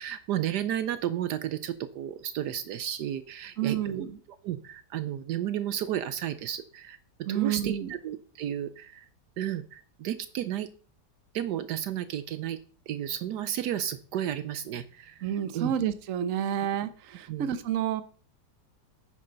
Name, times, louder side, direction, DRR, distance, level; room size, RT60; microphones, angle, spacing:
voice 1, 0.0-4.1 4.4-9.1 9.4-10.7 11.3-12.6 12.9-15.2 15.5-15.7 17.3-17.5, right 11 dB, 75° right, 12 dB, 1.2 m, -33 dB
voice 2, 3.6-4.2 7.3-7.9 15.2-18.0, right 10 dB, 55° right, 12 dB, 1.1 m, -29 dB
10.5 x 8.6 x 3.9 m, 0.42 s
omnidirectional pair, 1.9 m